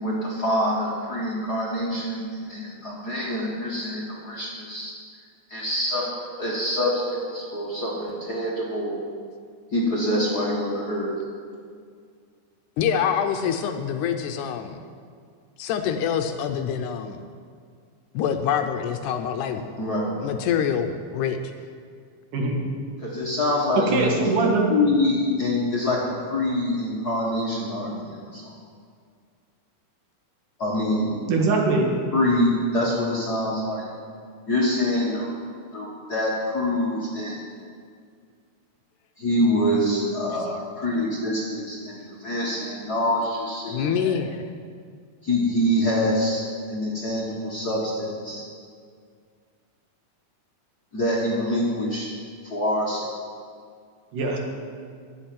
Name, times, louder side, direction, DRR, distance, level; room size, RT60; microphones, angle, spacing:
voice 1, 0.0-4.9 5.5-6.1 6.4-9.0 9.7-11.1 19.8-20.2 23.0-23.9 24.4-28.4 30.6-31.1 32.1-33.9 34.5-35.3 35.7-37.4 39.2-44.2 45.2-48.4 50.9-52.1 52.4-53.1, left 1 dB, 45° left, -4 dB, 1.4 m, -25 dB
voice 2, 12.8-14.8 15.6-17.2 18.1-19.6 20.2-21.4 23.9-24.3 43.7-44.5, left 8 dB, 75° left, 6 dB, 2.0 m, -26 dB
voice 3, 23.9-24.7 31.3-31.9 54.1-54.4, right 3 dB, 75° right, 0 dB, 3.2 m, -22 dB
11.5 x 8.1 x 9.2 m, 2.1 s
omnidirectional pair, 3.8 m